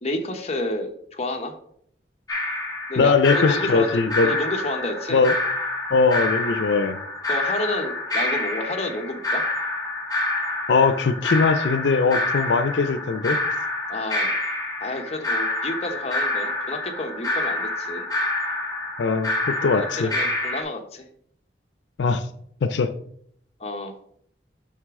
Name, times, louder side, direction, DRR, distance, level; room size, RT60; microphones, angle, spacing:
voice 1, 0.0-1.5 2.9-5.3 7.3-9.4 13.9-14.3 14.8-18.1 19.7-21.0 23.6-24.0, left 1 dB, 35° left, 4 dB, 0.9 m, -30 dB
sound 1, 2.3-20.6, left 2 dB, 20° left, 1.4 m, -27 dB
voice 2, 3.0-4.4 5.1-5.3 5.9-7.0 10.7-13.4 19.0-20.1 22.0-22.3 22.6-22.9, left 4 dB, 85° left, 11 dB, 0.4 m, -20 dB
6.3 x 5.9 x 3.6 m, 0.68 s
head